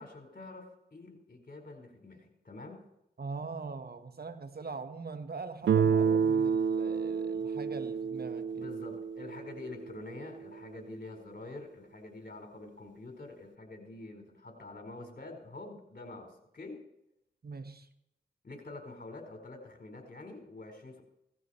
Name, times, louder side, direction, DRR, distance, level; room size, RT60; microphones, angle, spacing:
voice 1, 0.0-2.8 8.6-16.8 18.4-21.0, left 2 dB, 50° left, 4 dB, 4.5 m, -46 dB
voice 2, 3.2-8.7 17.4-17.9, right 4 dB, 55° right, 9 dB, 1.4 m, -42 dB
Guitar, 5.7-10.5, right 6 dB, 80° right, 0.5 m, -30 dB
17.5 x 14.0 x 4.4 m, 0.82 s
cardioid pair, 45°, 19 cm